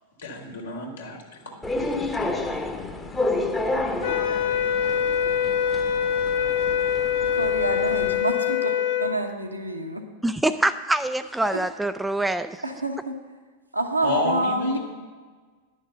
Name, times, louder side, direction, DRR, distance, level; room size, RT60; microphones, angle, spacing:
voice 1, 0.2-1.7 14.0-14.8, left 1 dB, 70° left, 0 dB, 2.1 m, -29 dB
sound 1, 1.6-8.2, left 2 dB, 10° left, 0.9 m, -30 dB
sound 2, 4.0-9.2, left 8 dB, 55° left, 0.6 m, -24 dB
voice 2, 7.3-10.0 12.6-13.2 13.7-14.8, right 1 dB, 85° right, 3 dB, 1.0 m, -28 dB
voice 3, 10.2-12.6, right 1 dB, 5° right, 11 dB, 0.3 m, -25 dB
10.5 x 6.5 x 6.7 m, 1.5 s
figure-of-eight pair, 90°, 0 cm